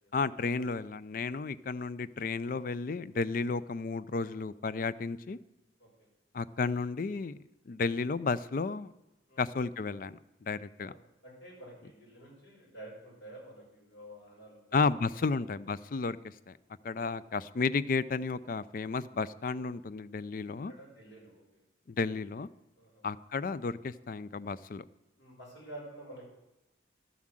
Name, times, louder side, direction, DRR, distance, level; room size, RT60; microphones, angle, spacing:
voice 1, 0.1-5.4 6.3-7.4 7.7-8.9 9.4-10.9 14.7-16.6 16.8-20.7 21.9-22.5 23.0-24.8, left 4 dB, 45° left, 16 dB, 0.4 m, -33 dB
voice 2, 11.2-14.8 20.7-21.6 22.8-23.1 25.2-26.3, right 1 dB, 70° left, -4 dB, 5.7 m, -50 dB
12.0 x 7.4 x 7.6 m, 0.99 s
head